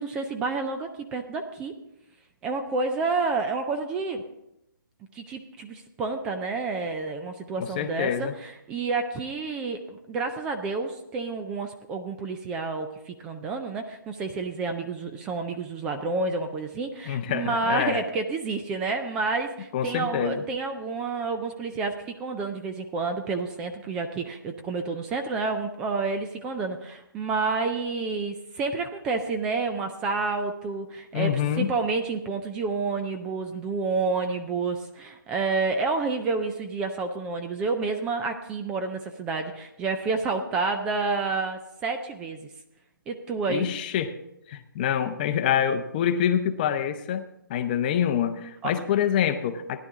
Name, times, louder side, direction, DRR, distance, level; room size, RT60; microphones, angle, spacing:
voice 1, 0.0-1.8 2.4-4.2 5.1-31.3 31.6-42.5 43.1-43.7 48.6-48.7, right 4 dB, 5° right, 6 dB, 0.3 m, -29 dB
voice 2, 7.6-8.3 17.1-18.0 19.7-20.4 31.1-31.7 43.5-44.1 44.5-47.2 47.5-49.8, left 9 dB, 25° left, 8 dB, 0.7 m, -26 dB
15.5 x 10.5 x 3.6 m, 0.85 s
hypercardioid pair, 160°, 12 cm